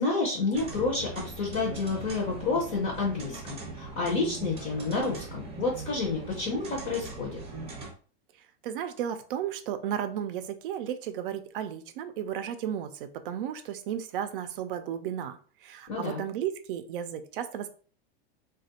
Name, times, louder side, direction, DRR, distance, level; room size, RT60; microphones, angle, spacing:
voice 1, 0.0-7.3 15.9-16.2, left 3 dB, 25° left, -1 dB, 0.6 m, -29 dB
sound 1, 0.5-7.9, right 2 dB, 20° right, 0.7 m, -41 dB
voice 2, 8.6-15.4 15.6-17.7, right 9 dB, 65° right, 10 dB, 0.5 m, -34 dB
3.1 x 2.3 x 2.8 m, 0.41 s
supercardioid pair, 155°, 30 cm